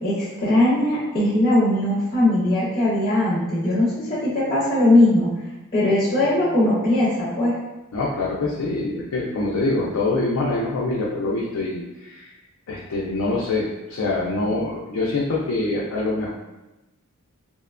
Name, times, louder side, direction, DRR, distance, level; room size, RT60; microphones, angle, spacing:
voice 1, 0.0-5.3 5.7-7.6, left 1 dB, 25° left, -9 dB, 0.6 m, -20 dB
voice 2, 7.9-12.3 12.7-16.3, left 2 dB, 80° left, -5 dB, 0.4 m, -25 dB
2.7 x 2.1 x 2.4 m, 0.99 s
head